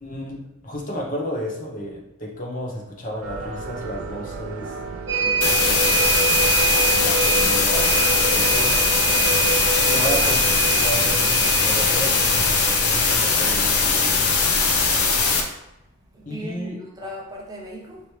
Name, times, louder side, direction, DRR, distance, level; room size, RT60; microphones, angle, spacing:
voice 1, 0.0-4.7 5.6-6.1 7.0-8.8 9.9-14.3 16.3-17.1, equal, 35° left, -1 dB, 0.7 m, -32 dB
sound 1, 3.2-11.8, right 4 dB, 65° right, 0.5 m, -35 dB
sound 2, 5.1-14.8 15.2-15.3, right 5 dB, 50° right, 1.0 m, -26 dB
voice 2, 5.2-6.4 16.1-18.0, equal, 15° right, -2 dB, 0.5 m, -39 dB
sound 3, 5.4-15.4, left 4 dB, 80° left, 0.7 m, -20 dB
4.9 x 2.8 x 3.1 m, 0.94 s
head